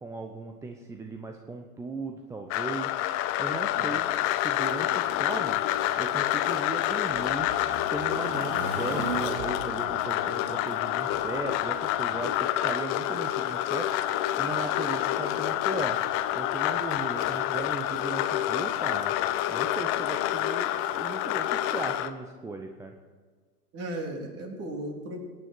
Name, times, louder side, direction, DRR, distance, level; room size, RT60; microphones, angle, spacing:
voice 1, 0.0-2.9 3.4-5.6 6.0-7.5 7.9-12.4 12.6-13.9 14.4-16.0 16.3-19.1 19.5-22.9, right 3 dB, 5° right, 4 dB, 0.6 m, -37 dB
sound 1, 2.5-22.1, left 13 dB, 30° left, 0.7 m, -28 dB
sound 2, 3.9-12.3, right 4 dB, 60° right, 2.4 m, -40 dB
voice 2, 23.7-25.2, right 1 dB, 30° right, 2 dB, 3.4 m, -36 dB
22.0 x 9.5 x 4.5 m, 1.5 s
hypercardioid pair, 110°, 47 cm